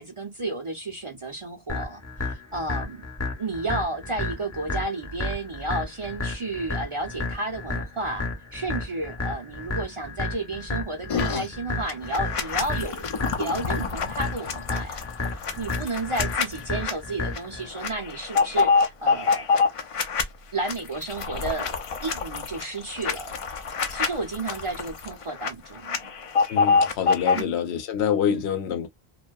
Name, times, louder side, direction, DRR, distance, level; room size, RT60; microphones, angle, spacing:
voice 1, 0.0-3.0 3.4-13.1 13.4-15.0 15.6-19.5 20.5-21.7 22.0-23.3 23.9-25.9 27.3-27.6 28.3-28.5, right 2 dB, 40° right, 0.5 m, -32 dB
sound 1, 1.7-17.7, left 2 dB, 20° left, 0.6 m, -32 dB
sound 2, 11.1-11.5 11.9-16.9 17.3-17.5 17.7-20.2 20.6-25.5 25.8-27.4, left 5 dB, 60° left, 0.3 m, -26 dB
voice 2, 26.5-28.9, left 8 dB, 90° left, 0.9 m, -26 dB
2.6 x 2.2 x 2.2 m
omnidirectional pair, 1.1 m